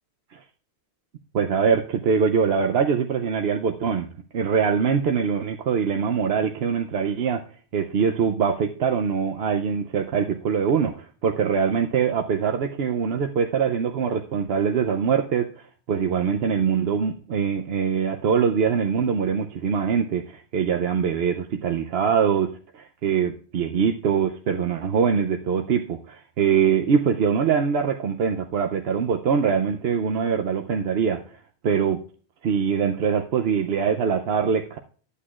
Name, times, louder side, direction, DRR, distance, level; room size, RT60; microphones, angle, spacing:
voice 1, 1.3-4.1 4.3-7.4 7.7-31.2 31.6-32.0 32.4-34.8, right 6 dB, 70° right, 5 dB, 0.9 m, -23 dB
13.0 x 8.3 x 2.4 m, 0.43 s
omnidirectional pair, 1.1 m